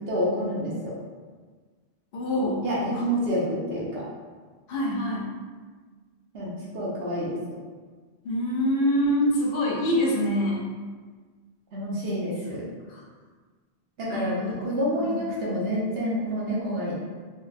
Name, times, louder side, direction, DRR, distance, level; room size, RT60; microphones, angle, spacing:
voice 1, 0.1-0.9 2.6-4.0 6.3-7.4 11.7-12.7 14.0-17.0, equal, 70° right, -6 dB, 1.0 m, -28 dB
voice 2, 2.1-2.6 2.9-3.0 4.7-5.3 8.2-10.7 12.9-13.0 14.1-14.7 15.0-15.3, equal, 65° left, -2 dB, 0.8 m, -25 dB
3.2 x 2.2 x 2.4 m, 1.5 s
omnidirectional pair, 1.1 m